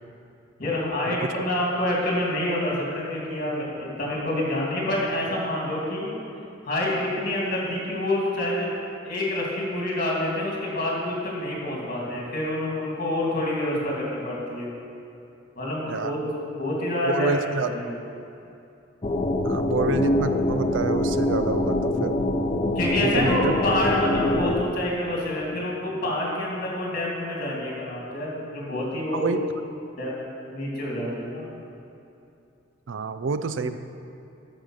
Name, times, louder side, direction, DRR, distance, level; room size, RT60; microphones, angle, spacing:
voice 1, 0.6-6.2 6.6-8.7 9.0-14.7 15.6-16.2 16.6-17.3 17.7-17.9 21.9-22.1 22.8-29.3 30.0-31.4, left 1 dB, 45° left, -3 dB, 2.5 m, -27 dB
voice 2, 17.1-17.7 19.4-22.2 23.0-23.6 29.1-29.4 32.9-33.8, right 4 dB, 70° right, 10 dB, 0.4 m, -28 dB
sound 1, 19.0-24.6, left 1 dB, 30° left, 0.5 m, -24 dB
9.1 x 6.7 x 6.3 m, 2.7 s
head